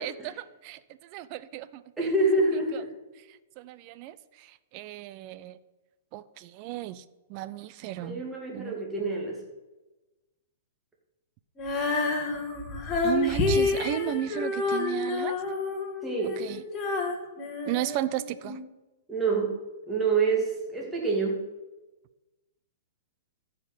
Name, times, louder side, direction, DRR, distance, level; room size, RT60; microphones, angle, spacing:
voice 1, 0.0-1.8 2.7-2.8 3.1-5.6 6.1-7.0 7.3-8.2 8.5-8.9 13.0-15.4 16.4-16.6 17.7-18.6, right 13 dB, 40° right, 16 dB, 0.6 m, -34 dB
voice 2, 2.0-2.9 8.0-9.4 16.0-16.4 19.1-19.6 19.9-21.4, right 3 dB, 10° right, -1 dB, 2.4 m, -27 dB
Female singing, 11.6-18.6, left 3 dB, 20° left, 2.1 m, -29 dB
14.0 x 5.3 x 5.7 m, 1.1 s
hypercardioid pair, 135°, 0 cm